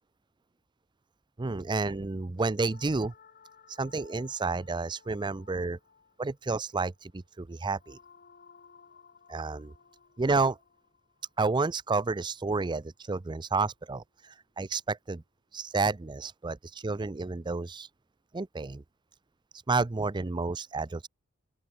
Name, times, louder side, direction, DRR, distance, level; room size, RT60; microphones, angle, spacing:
voice 1, 1.4-3.1 3.8-5.8 6.2-8.0 9.3-9.7 10.2-10.6 11.4-15.2 15.5-17.8 18.3-18.8 19.7-21.1, right 3 dB, 20° right, 0.5 m, -30 dB
sound 1, 2.6-12.8, left 6 dB, 45° left, 1.9 m, -59 dB
open air
head